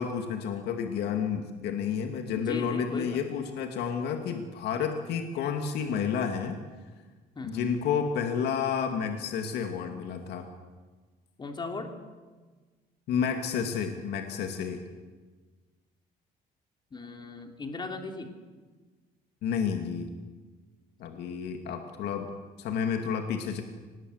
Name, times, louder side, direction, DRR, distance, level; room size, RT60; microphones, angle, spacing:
voice 1, 0.0-6.6 7.4-10.5 13.1-14.8 19.4-20.1 21.0-22.3 22.6-23.6, left 7 dB, 75° left, 5 dB, 2.3 m, -30 dB
voice 2, 2.3-3.2 7.3-7.7 11.4-11.9 16.9-18.3, left 3 dB, 25° left, 4 dB, 3.2 m, -37 dB
25.5 x 20.0 x 8.0 m, 1.4 s
cardioid pair, 110°, 17 cm